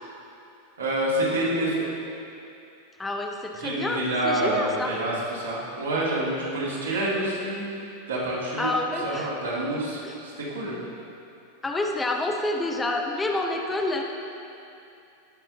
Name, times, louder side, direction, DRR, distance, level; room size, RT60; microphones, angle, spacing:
voice 1, 0.8-1.8 3.6-8.7 9.0-10.8, right 1 dB, 70° right, -6 dB, 2.1 m, -27 dB
voice 2, 3.0-4.9 8.6-9.3 10.0-10.2 11.6-14.0, left 2 dB, 15° left, 2 dB, 0.7 m, -28 dB
17.0 x 5.9 x 2.8 m, 2.7 s
figure-of-eight pair, 90°, 0 cm